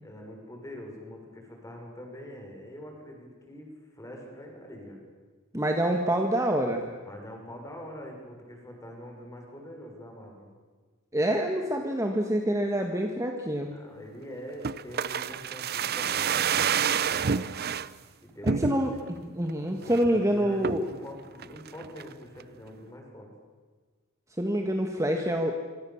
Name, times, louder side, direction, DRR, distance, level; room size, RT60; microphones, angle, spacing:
voice 1, 0.0-5.0 7.1-10.5 13.7-17.6 18.2-19.0 19.7-23.3, equal, 15° left, 1 dB, 6.2 m, -44 dB
voice 2, 5.5-6.9 11.1-13.7 18.4-18.9 19.2-20.9 24.4-25.5, right 1 dB, 15° right, 3 dB, 1.7 m, -26 dB
sound 1, 14.6-17.9 18.5-19.1 19.5-19.6 19.8-20.2 20.6-21.0 21.4-22.1 22.4-22.5, right 7 dB, 50° right, 0.7 m, -28 dB
26.5 x 25.5 x 7.3 m, 1.4 s
head